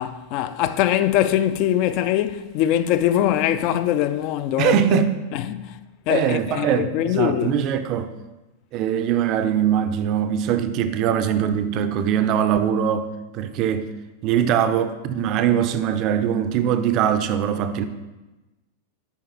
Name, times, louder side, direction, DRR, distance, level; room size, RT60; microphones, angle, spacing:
voice 1, 0.0-5.0 5.3-5.8 6.1-7.6, left 11 dB, 45° left, 0.3 m, -22 dB
voice 2, 4.6-5.1 6.1-8.1 8.7-13.9 14.2-17.8, right 9 dB, 40° right, 0.4 m, -22 dB
7.1 x 5.0 x 3.0 m
figure-of-eight pair, 90°, 0 cm